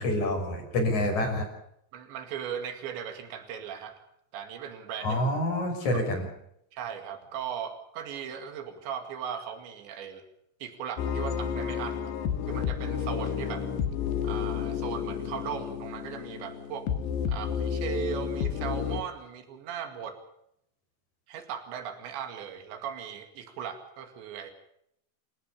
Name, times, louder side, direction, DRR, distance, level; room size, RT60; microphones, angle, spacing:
voice 1, 0.0-1.5 5.0-6.3, left 1 dB, 40° left, 3 dB, 7.1 m, -27 dB
voice 2, 1.9-4.1 4.3-5.2 5.9-6.0 6.7-10.3 10.6-12.1 12.5-13.7 14.2-16.9 17.3-20.2 21.3-24.5, right 8 dB, 90° right, 6 dB, 4.5 m, -38 dB
sound 1, 11.0-19.0, left 7 dB, 75° left, 3.6 m, -31 dB
28.5 x 14.5 x 7.0 m, 0.76 s
omnidirectional pair, 5.0 m